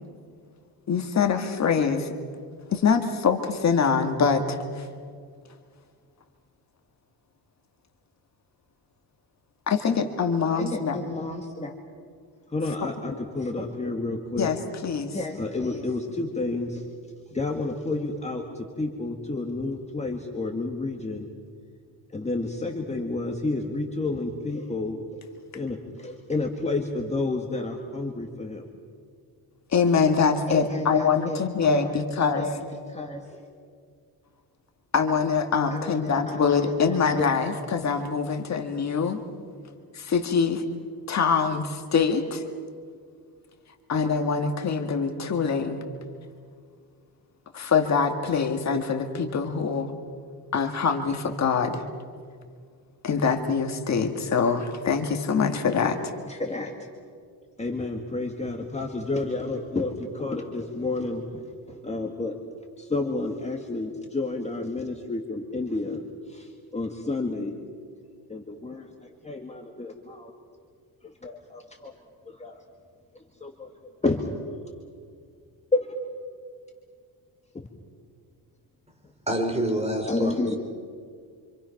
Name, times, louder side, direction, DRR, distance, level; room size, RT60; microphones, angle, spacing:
voice 1, 0.9-2.1 2.7-4.9 9.7-11.0 14.4-15.2 29.7-32.5 34.9-39.2 39.9-40.7 41.1-42.4 43.9-45.8 47.5-49.9 50.5-51.8 53.0-56.1, left 5 dB, 40° left, 5 dB, 1.8 m, -24 dB
voice 2, 10.6-11.7 12.5-14.5 15.1-16.8 17.3-21.3 22.1-25.0 25.5-28.6 30.5-32.0 32.3-32.6 32.9-33.5 35.7-37.3 56.3-56.7 57.6-62.4 62.8-66.0 66.3-67.5 68.3-68.9 69.2-70.3 71.2-71.9 72.3-72.6 73.4-73.7 74.0-74.3 75.7-75.9 80.1-80.6, left 2 dB, 15° left, 1 dB, 2.0 m, -30 dB
voice 3, 79.3-80.3, right 1 dB, 15° right, 4 dB, 3.5 m, -26 dB
28.5 x 26.5 x 5.9 m, 2.1 s
cardioid pair, 135°, 40 cm